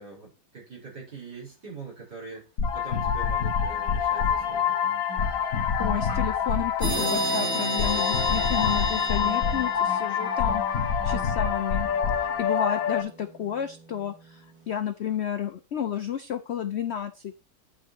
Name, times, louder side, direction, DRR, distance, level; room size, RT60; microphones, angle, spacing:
voice 1, 0.0-2.5 2.7-5.1, right 4 dB, 70° right, -5 dB, 6.3 m, -43 dB
sound 1, 2.3-2.4 3.7-14.8 15.1-15.3, right 3 dB, 85° right, 5.3 m, -46 dB
sound 2, 2.6-13.0, left 7 dB, 55° left, 1.5 m, -26 dB
voice 2, 5.8-11.9 12.2-17.4, left 9 dB, 85° left, 10 dB, 0.5 m, -31 dB
sound 3, 6.8-10.4, equal, 45° right, 4.1 m, -30 dB
9.7 x 5.7 x 4.5 m, 0.31 s
omnidirectional pair, 1.9 m